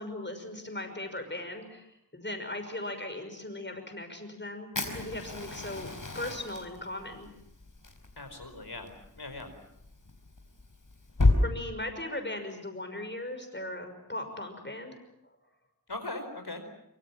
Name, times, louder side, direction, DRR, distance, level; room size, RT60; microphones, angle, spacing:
voice 1, 0.0-5.9 6.1-7.3 11.4-15.0, left 1 dB, 30° left, 6 dB, 6.0 m, -38 dB
Fire, 4.7-11.4, left 2 dB, 55° left, 4.7 m, -32 dB
voice 2, 8.2-9.5 15.9-16.6, left 2 dB, 75° left, 6 dB, 4.7 m, -40 dB
25.5 x 25.0 x 7.4 m, 0.82 s
wide cardioid pair, 60°, 39 cm